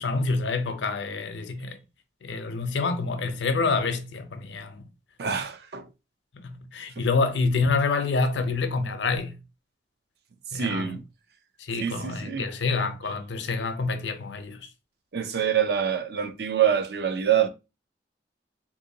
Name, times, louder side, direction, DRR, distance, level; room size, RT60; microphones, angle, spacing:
voice 1, 0.0-1.8 2.2-4.9 6.3-9.4 10.5-11.0 11.6-14.7, left 4 dB, 80° left, 0.6 m, -27 dB
voice 2, 5.2-5.9 7.0-7.1 10.5-11.0 11.8-12.5 15.1-17.5, right 8 dB, 60° right, 0.4 m, -26 dB
3.6 x 2.6 x 2.7 m
head